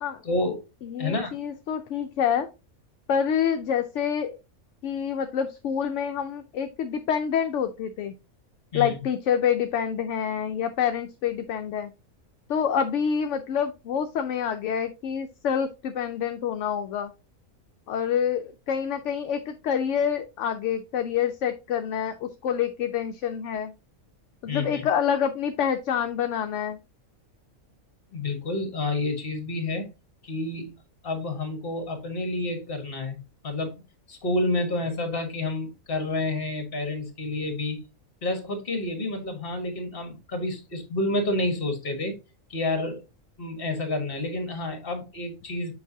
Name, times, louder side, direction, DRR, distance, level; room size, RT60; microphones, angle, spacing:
voice 1, 0.2-0.6 1.0-1.4 8.7-9.0 24.5-24.8 28.1-29.9 30.2-30.7 31.0-33.2 33.4-33.7 34.1-37.8 38.2-42.2 42.5-43.0 43.4-45.7, left 2 dB, 40° left, 1.6 m, -29 dB
voice 2, 0.8-2.5 3.1-4.4 4.8-8.1 8.7-11.9 12.5-17.1 17.9-23.7 24.4-26.8, left 8 dB, 65° left, 0.8 m, -27 dB
6.7 x 5.2 x 2.7 m
omnidirectional pair, 1.5 m